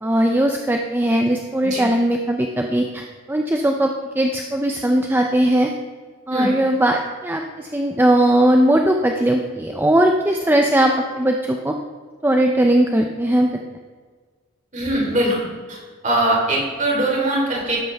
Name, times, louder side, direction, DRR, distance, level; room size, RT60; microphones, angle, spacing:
voice 1, 0.0-5.7 6.3-11.8 12.2-13.6, right 1 dB, 10° right, 3 dB, 0.6 m, -19 dB
voice 2, 14.7-15.8 16.0-17.8, right 1 dB, 35° right, -3 dB, 3.7 m, -21 dB
13.0 x 11.0 x 3.5 m, 1.6 s
head